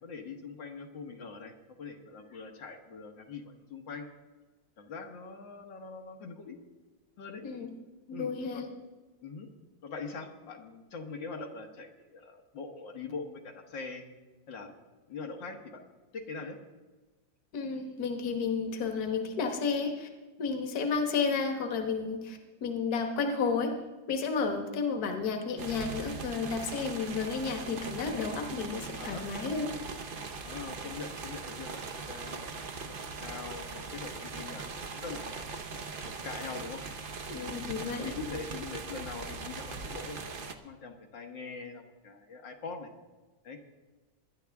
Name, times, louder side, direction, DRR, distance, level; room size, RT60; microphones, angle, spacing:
voice 1, 0.0-4.1 4.8-6.6 7.2-7.4 8.1-8.6 9.2-9.5 9.8-14.1 14.5-14.7 15.1-15.8 16.1-16.6 29.0-29.3 30.4-35.6 36.2-36.8 37.6-42.9 43.4-43.6, left 4 dB, 75° left, 3 dB, 2.0 m, -43 dB
voice 2, 7.4-7.7 8.1-8.7 17.5-20.1 20.4-23.7 24.1-29.7 37.3-38.1, left 5 dB, 55° left, 4 dB, 1.8 m, -32 dB
sound 1, 25.6-40.6, right 4 dB, 45° right, 0.7 m, -40 dB
22.0 x 10.5 x 3.5 m, 1.3 s
omnidirectional pair, 2.0 m